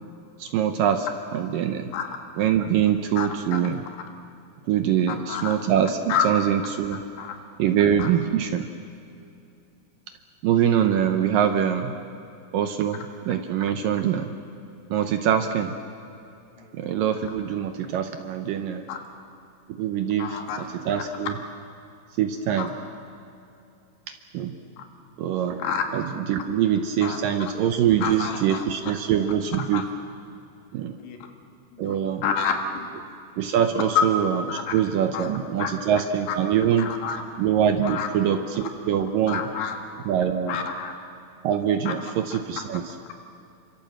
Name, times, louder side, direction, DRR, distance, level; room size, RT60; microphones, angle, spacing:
voice 1, 0.4-1.9 2.4-3.8 4.7-7.0 7.6-8.7 10.4-11.9 12.5-14.3 14.9-15.7 16.7-18.8 19.7-21.3 22.2-22.7 24.3-24.5 25.2-25.6 25.9-29.9 30.7-31.0 31.8-32.2 33.4-36.9 37.4-39.4 40.1-40.6 41.4-43.0, right 9 dB, 80° right, 7 dB, 2.0 m, -24 dB
voice 2, 3.2-3.6 5.1-5.6 6.1-6.3 7.2-7.4 8.0-8.1 16.6-16.7 18.9-19.0 20.2-20.6 22.6-22.7 24.8-24.9 25.6-25.8 27.0-27.2 28.0-28.9 29.7-29.8 31.0-31.2 31.7-32.8 34.0-34.1 34.5-34.7 35.1-35.3 35.6-35.7 36.8-37.2 37.8-38.1 39.3-39.8 40.5-40.9 41.9-42.0, left 7 dB, 70° left, 4 dB, 3.8 m, -28 dB
28.0 x 25.0 x 7.6 m, 2.6 s
omnidirectional pair, 5.1 m